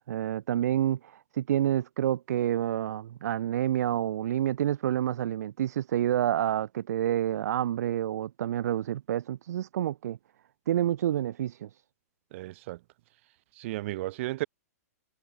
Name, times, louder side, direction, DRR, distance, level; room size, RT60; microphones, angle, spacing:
voice 1, 0.1-10.2 10.7-11.7, right 11 dB, 70° right, 0.4 m, -28 dB
voice 2, 12.3-12.8 13.6-14.5, right 18 dB, 50° right, 1.6 m, -34 dB
hypercardioid pair, 140°, 9 cm